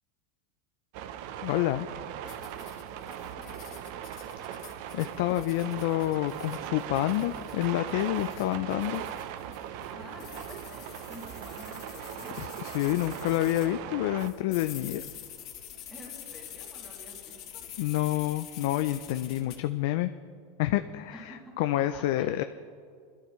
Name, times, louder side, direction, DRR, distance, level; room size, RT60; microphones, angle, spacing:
sound 1, 0.9-14.3, right 10 dB, 50° right, 0.6 m, -39 dB
voice 1, 1.4-1.9 4.9-9.0 12.4-15.0 17.8-20.1 20.6-22.4, left 15 dB, 60° left, 9 dB, 0.4 m, -28 dB
sound 2, 2.2-13.7 14.2-19.6, left 9 dB, 40° left, 1.6 m, -47 dB
voice 2, 3.0-3.8 9.9-12.4 12.7-13.2 15.9-17.6 21.1-21.7 21.9-22.4, equal, 5° left, -5 dB, 2.7 m, -49 dB
21.5 x 12.0 x 3.1 m, 2.1 s
supercardioid pair, 165°, 0 cm